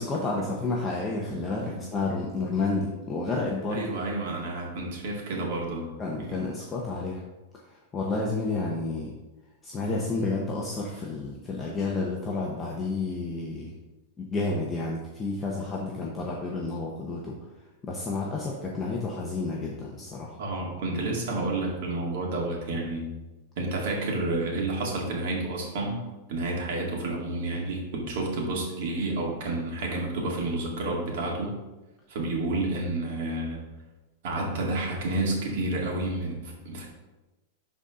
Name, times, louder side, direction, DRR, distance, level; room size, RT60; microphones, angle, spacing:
voice 1, 0.0-3.9 6.0-7.2 7.7-9.1 9.6-13.7 14.2-17.4 17.8-20.4, left 3 dB, 15° left, -3 dB, 0.8 m, -30 dB
voice 2, 3.7-5.9 6.2-6.4 20.4-23.1 23.6-31.5 32.1-33.6 34.2-36.9, right 2 dB, 55° right, -1 dB, 2.2 m, -30 dB
12.0 x 4.1 x 3.7 m, 1.1 s
supercardioid pair, 170°, 0 cm